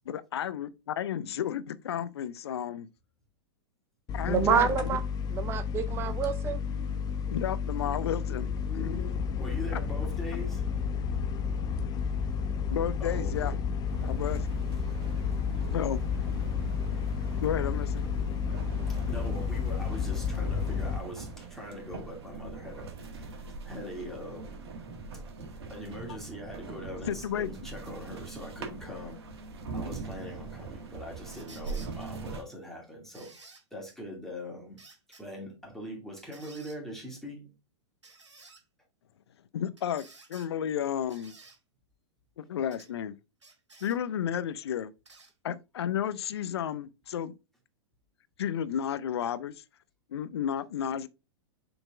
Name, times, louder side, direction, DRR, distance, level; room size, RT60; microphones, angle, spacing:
voice 1, 0.1-2.9 4.1-5.0 7.3-9.1 9.7-9.8 12.7-13.5 14.0-14.5 15.7-16.0 17.4-18.0 27.1-27.5 28.7-28.8 39.5-41.3 42.4-43.2 43.8-44.9 45.4-47.3 48.4-49.6 50.1-51.1, left 9 dB, 65° left, 0.6 m, -32 dB
sound 1, 4.1-21.0, left 6 dB, 25° left, 0.7 m, -31 dB
voice 2, 4.3-5.0 5.3-6.6, right 7 dB, 15° right, 0.5 m, -27 dB
voice 3, 9.4-10.6 13.0-13.7 14.8-14.9 18.9-24.5 25.7-29.2 29.7-34.8 35.2-37.5, left 1 dB, 5° left, 2.4 m, -42 dB
sound 2, 13.9-32.4, right 4 dB, 65° right, 1.6 m, -42 dB
sound 3, 31.3-31.9 33.1-33.6 34.8-35.2 36.3-36.8 38.0-38.6 39.8-40.5 41.1-41.6 42.7-42.9 43.4-44.0 45.0-45.3 46.2-46.3, right 3 dB, 85° right, 1.8 m, -53 dB
6.8 x 4.0 x 3.6 m
figure-of-eight pair, 105°, 15 cm